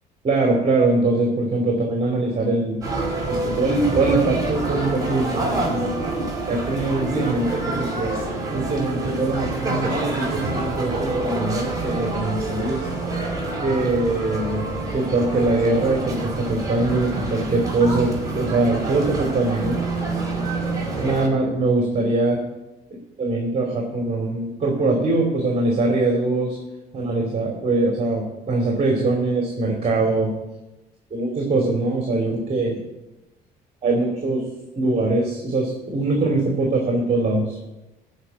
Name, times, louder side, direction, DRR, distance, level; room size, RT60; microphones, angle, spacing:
voice 1, 0.2-2.8 3.3-6.0 6.5-8.2 8.5-12.8 13.6-19.8 21.0-22.4 22.9-26.6 26.9-30.3 31.1-32.8 33.8-34.4 34.7-37.6, right 2 dB, 35° right, 1 dB, 2.8 m, -22 dB
sound 1, 2.8-21.3, right 2 dB, 20° right, 4.2 m, -27 dB
14.5 x 5.2 x 9.1 m, 1.0 s
cardioid pair, 110°, 17 cm